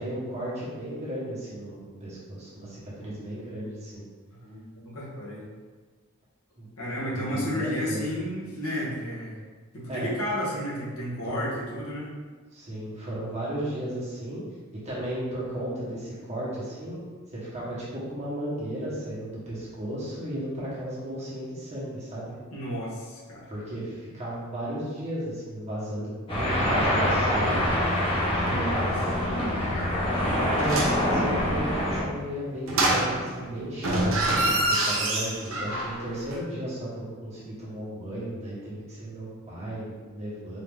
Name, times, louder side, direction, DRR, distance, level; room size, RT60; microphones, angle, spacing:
voice 1, 0.0-4.0 6.6-6.7 7.1-8.0 9.9-10.1 11.2-11.4 12.5-14.4 14.8-17.0 17.3-22.4 23.5-27.8 28.2-28.7 30.4-40.6, right 1 dB, 30° right, -8 dB, 1.4 m, -34 dB
voice 2, 4.4-5.5 6.8-9.4 9.7-12.1 22.5-23.5 28.4-29.0, equal, 75° left, -6 dB, 1.3 m, -32 dB
sound 1, 26.3-32.0, equal, 25° left, 1.0 m, -25 dB
sound 2, 30.6-31.1 32.7-33.4 33.8-36.0 36.3-36.4, right 1 dB, 65° right, 0.7 m, -26 dB
4.1 x 2.8 x 3.6 m, 1.5 s
head